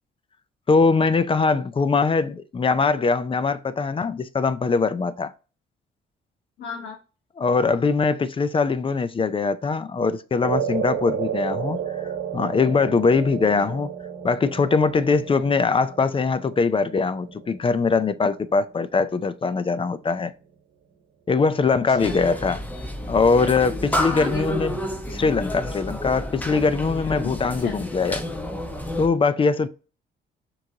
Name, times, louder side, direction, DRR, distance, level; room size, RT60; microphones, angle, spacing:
voice 1, 0.7-5.3 7.4-11.8 12.3-13.9 14.2-20.3 21.3-22.6 23.1-24.8 25.1-28.2 29.0-29.7, left 4 dB, 25° left, 0.4 m, -22 dB
voice 2, 6.6-7.0 13.4-13.6 21.9-22.1 24.1-24.4 27.2-27.3 27.6-27.7, left 6 dB, 80° left, 1.0 m, -34 dB
sound 1, 10.4-18.9, right 8 dB, 60° right, 1.0 m, -32 dB
sound 2, 22.0-29.1, left 1 dB, 10° left, 1.0 m, -30 dB
6.1 x 3.1 x 2.8 m
cardioid pair, 90°, 20 cm